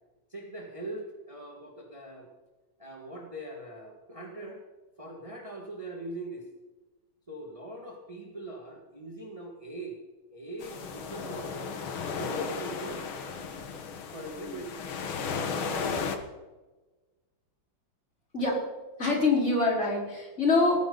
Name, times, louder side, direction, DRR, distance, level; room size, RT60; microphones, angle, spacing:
voice 1, 0.3-2.3 2.8-4.6 5.0-6.5 7.3-10.0 10.3-11.7 12.1-13.4 14.1-14.8 15.6-16.1, right 1 dB, 15° right, 0 dB, 2.0 m, -41 dB
sound 1, 10.6-16.2, left 5 dB, 90° left, 2.3 m, -35 dB
voice 2, 19.0-20.8, left 3 dB, 35° left, -2 dB, 4.9 m, -24 dB
18.5 x 15.5 x 4.1 m, 1.2 s
omnidirectional pair, 2.2 m